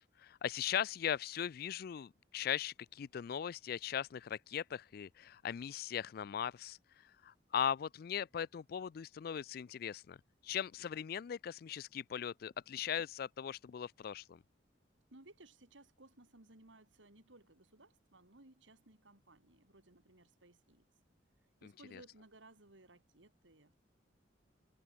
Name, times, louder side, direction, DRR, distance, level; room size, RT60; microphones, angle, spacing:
voice 1, 0.2-6.8 7.2-10.2 10.4-14.4 21.6-22.0, left 9 dB, 50° left, 0.3 m, -39 dB
voice 2, 15.1-20.9 21.6-23.8, right 2 dB, 80° right, 3.6 m, -61 dB
head